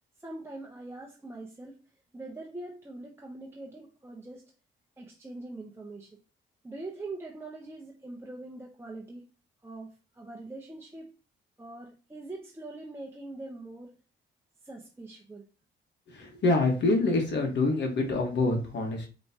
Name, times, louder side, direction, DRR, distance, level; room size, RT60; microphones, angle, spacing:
voice 1, 0.2-1.8 2.1-4.5 5.0-6.2 6.6-9.2 9.6-9.9 10.1-11.1 11.6-14.0 14.6-15.5, right 2 dB, 10° right, 0.9 m, -43 dB
voice 2, 16.1-19.1, left 2 dB, 60° left, 1.5 m, -26 dB
5.4 x 3.3 x 2.8 m
cardioid pair, 90°, 20 cm